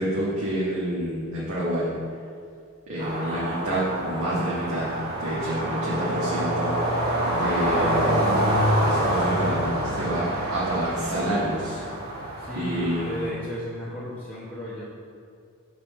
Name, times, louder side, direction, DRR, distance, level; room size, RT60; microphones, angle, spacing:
voice 1, 0.0-1.9 2.9-4.9 5.2-6.7 7.3-8.5 8.8-10.3 10.5-11.8 12.5-13.3, right 1 dB, 85° right, -8 dB, 1.4 m, -28 dB
sound 1, 3.0-13.3, right 1 dB, 45° right, 1.1 m, -26 dB
voice 2, 12.4-14.8, left 1 dB, 5° left, -11 dB, 1.1 m, -34 dB
5.4 x 4.5 x 6.2 m, 2.2 s
head